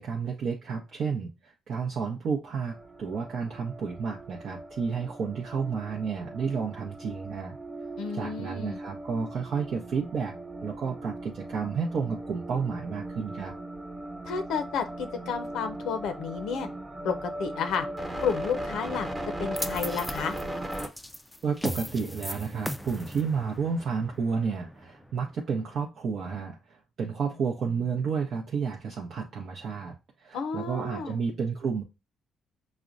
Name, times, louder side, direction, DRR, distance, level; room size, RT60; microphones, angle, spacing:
voice 1, 0.0-7.6 8.1-10.3 10.6-13.5 21.4-31.8, right 5 dB, 65° right, 0.6 m, -31 dB
sound 1, 2.7-20.9, right 1 dB, 20° right, 1.0 m, -38 dB
voice 2, 8.0-8.8 14.2-16.7 17.0-17.9 18.2-19.1 19.4-20.4 30.3-31.2, left 6 dB, 85° left, 0.5 m, -31 dB
sound 2, 19.6-25.8, equal, 5° left, 0.3 m, -38 dB
5.7 x 2.1 x 2.4 m
cardioid pair, 90°, 0 cm